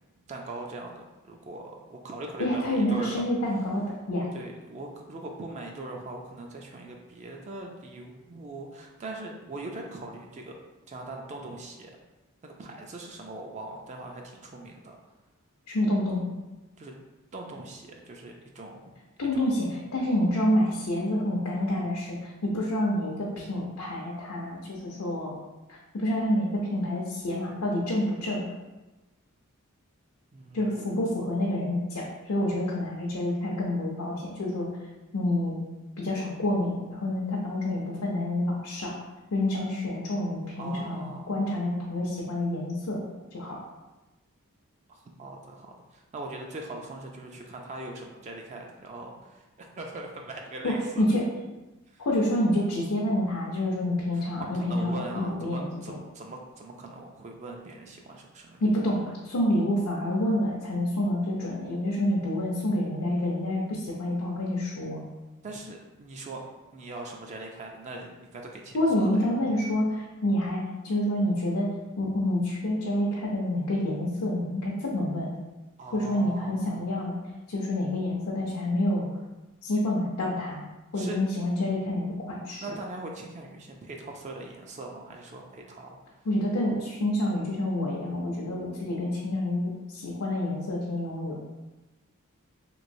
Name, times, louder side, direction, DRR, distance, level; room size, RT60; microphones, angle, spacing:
voice 1, 0.3-3.2 4.3-10.6 10.9-11.9 12.4-15.0 16.8-16.9 17.3-18.9 19.2-19.5 30.3-31.0 40.5-41.5 44.9-51.0 51.9-52.1 54.1-54.2 54.5-58.6 65.4-66.4 66.7-69.3 75.8-76.9 80.9-81.2 82.6-86.0, right 2 dB, 30° right, 1 dB, 0.3 m, -41 dB
voice 2, 2.4-4.3 15.7-16.2 19.2-25.3 25.7-28.4 30.5-34.7 35.1-35.6 36.0-39.0 39.3-43.0 43.3-43.6 50.6-51.2 52.0-56.0 58.6-65.0 68.7-71.7 72.0-75.3 75.9-77.1 77.5-79.1 79.6-80.7 80.9-82.7 86.3-91.4, left 1 dB, 90° left, -4 dB, 0.5 m, -28 dB
3.2 x 3.0 x 2.6 m, 1.1 s
head